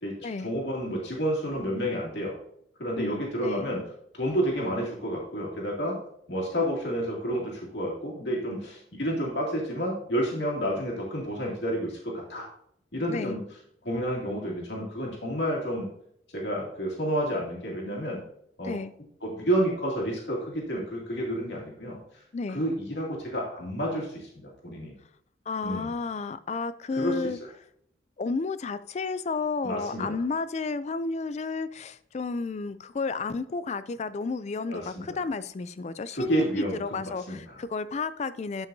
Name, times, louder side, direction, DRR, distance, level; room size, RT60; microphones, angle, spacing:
voice 1, 0.0-2.3 2.8-3.8 4.1-6.0 6.3-12.4 12.9-13.4 13.8-15.9 16.3-18.2 18.6-18.8 19.2-22.0 22.5-24.9 25.6-25.9 26.9-27.2 29.6-30.2 34.7-35.2 36.1-37.4, equal, 65° left, 2.4 m, -30 dB
voice 2, 3.0-3.7 13.1-13.4 18.6-18.9 22.3-22.6 25.5-27.4 28.2-38.7, left 4 dB, 35° left, 0.3 m, -32 dB
12.0 x 5.7 x 2.7 m
head